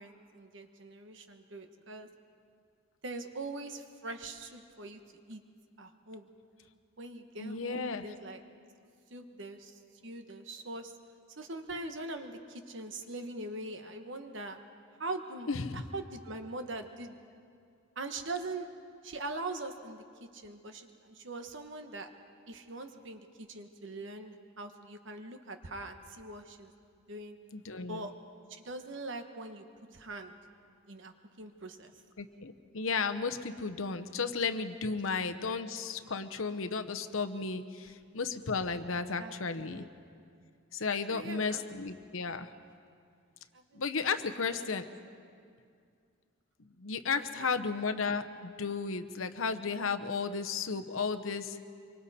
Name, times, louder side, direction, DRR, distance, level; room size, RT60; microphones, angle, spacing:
voice 1, 0.0-2.1 3.0-5.0 5.3-5.4 5.8-6.3 7.0-8.4 9.1-10.9 11.4-14.6 15.0-17.2 17.9-18.7 19.0-22.1 22.5-26.7 27.1-27.4 27.9-28.1 28.5-29.6 29.9-30.3 30.9-31.9 39.2-39.9 41.1-41.6 43.5-43.8 44.4-44.6 47.1-47.5, right 2 dB, 60° right, 6 dB, 1.3 m, -42 dB
voice 2, 7.4-8.0 15.5-15.8 27.5-28.1 32.2-39.8 40.7-42.5 43.7-44.9 46.6-51.6, left 4 dB, 75° left, 8 dB, 0.9 m, -34 dB
25.0 x 24.0 x 4.3 m, 2.3 s
head